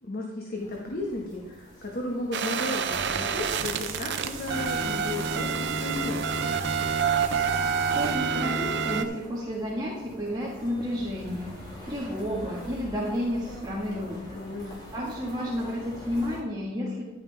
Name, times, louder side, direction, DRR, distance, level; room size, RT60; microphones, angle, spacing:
voice 1, 0.0-6.7 14.3-14.8, left 2 dB, 50° left, -1 dB, 1.5 m, -34 dB
sound 1, 0.6-16.4, equal, 20° left, 3.1 m, -46 dB
sound 2, 2.3-9.0, right 6 dB, 55° right, 0.6 m, -27 dB
sound 3, 2.8-8.2, right 2 dB, 80° right, 2.2 m, -39 dB
voice 2, 7.6-17.0, equal, 20° right, -4 dB, 1.6 m, -32 dB
11.0 x 9.4 x 3.5 m, 1.1 s
head